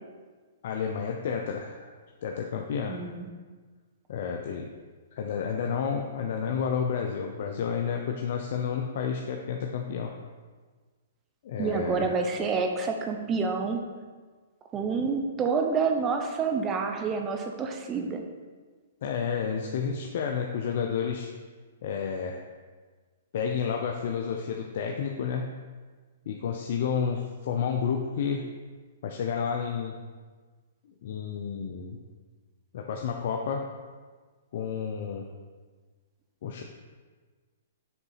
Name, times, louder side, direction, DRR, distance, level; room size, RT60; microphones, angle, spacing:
voice 1, 0.6-1.9 2.2-3.0 4.1-4.7 5.1-10.2 11.4-12.2 19.0-21.3 21.8-22.4 23.3-25.6 26.3-28.5 29.0-30.0 30.8-32.0 32.7-33.7 34.5-35.3 36.4-36.6, left 6 dB, 60° left, 2 dB, 0.6 m, -30 dB
voice 2, 2.9-3.3 11.6-13.8 14.7-18.2, right 5 dB, 20° right, 4 dB, 0.8 m, -28 dB
6.9 x 4.0 x 5.6 m, 1.4 s
hypercardioid pair, 135°, 0 cm